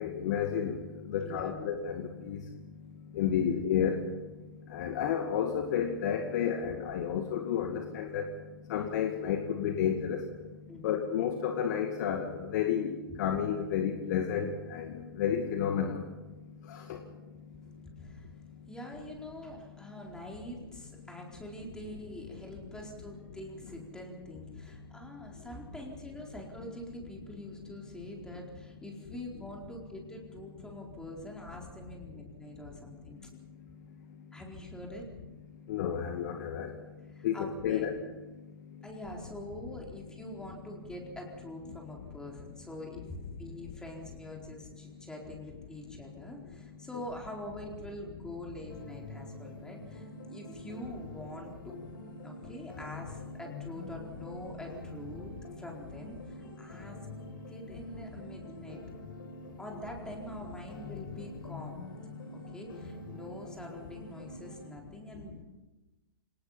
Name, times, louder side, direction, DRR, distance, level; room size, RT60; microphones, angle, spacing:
voice 1, 0.0-2.5 3.1-4.0 4.7-8.3 8.7-10.3 10.8-16.1 16.6-17.1 35.7-36.8 37.2-37.9 38.3-38.4 38.7-38.8 65.1-65.4, left 8 dB, 50° left, 4 dB, 2.2 m, -31 dB
voice 2, 1.2-1.7 10.7-11.0 17.6-18.3 18.7-33.3 34.3-35.1 37.1-37.9 38.8-51.8 52.2-57.0 57.5-58.8 59.6-61.8 62.3-65.4, left 1 dB, 5° left, 0 dB, 4.3 m, -45 dB
sound 1, 48.7-64.7, left 2 dB, 65° left, 6.0 m, -46 dB
27.0 x 19.0 x 5.8 m, 1.1 s
figure-of-eight pair, 115°, 12 cm